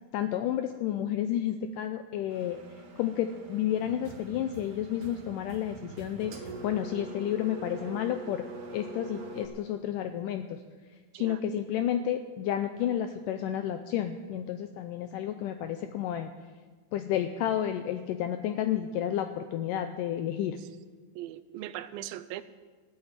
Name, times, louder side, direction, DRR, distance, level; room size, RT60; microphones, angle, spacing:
voice 1, 0.1-2.6 3.0-8.5 8.7-10.6 11.2-16.3 16.9-20.6, left 10 dB, 80° left, 8 dB, 2.0 m, -31 dB
Engine, 2.3-9.5, right 2 dB, 55° right, 1.8 m, -45 dB
sound 1, 3.8-4.6 4.9-7.2 7.6-7.7 8.0-9.3, right 3 dB, 25° right, 1.7 m, -50 dB
voice 2, 21.2-22.4, right 13 dB, 80° right, 12 dB, 2.3 m, -39 dB
14.5 x 8.8 x 9.0 m, 1.4 s
omnidirectional pair, 4.2 m